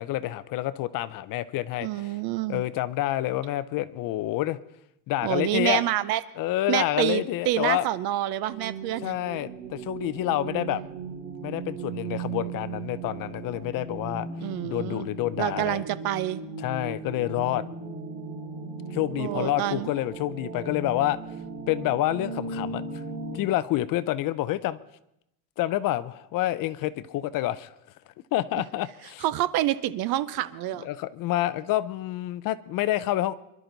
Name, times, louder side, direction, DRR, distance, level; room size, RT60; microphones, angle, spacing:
voice 1, 0.0-2.1 2.5-4.6 5.1-5.8 6.4-7.9 9.0-10.8 11.4-14.3 14.6-15.8 16.6-17.6 18.9-21.2 21.7-22.8 23.3-24.8 25.6-27.7 28.3-29.2 30.8-33.3, left 14 dB, 45° left, 15 dB, 0.6 m, -28 dB
voice 2, 1.8-2.6 5.2-6.2 6.7-9.1 14.4-15.1 15.4-16.4 19.2-19.9 29.2-30.9, right 13 dB, 50° right, 17 dB, 0.7 m, -27 dB
sound 1, 8.5-23.4, right 4 dB, 75° right, 5.7 m, -37 dB
25.5 x 12.0 x 4.0 m, 0.82 s
cardioid pair, 160°, 48 cm